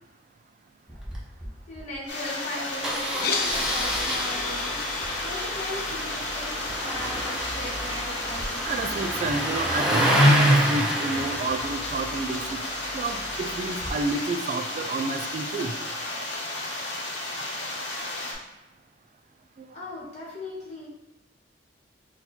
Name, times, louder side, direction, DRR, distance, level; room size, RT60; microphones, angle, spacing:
Engine starting, 0.9-1.2 1.4-1.5 1.8-1.9 2.8-13.9, equal, 5° right, 0.7 m, -27 dB
voice 1, 1.7-8.6 19.7-20.9, left 1 dB, 40° left, -5 dB, 1.3 m, -38 dB
sound 1, 2.1-18.3, left 2 dB, 75° left, 0.9 m, -33 dB
sound 2, 3.1-13.2, left 5 dB, 55° left, 0.4 m, -37 dB
voice 2, 8.7-12.4 12.9-15.7, right 3 dB, 45° right, 6 dB, 0.3 m, -30 dB
4.2 x 2.3 x 4.2 m, 0.98 s
head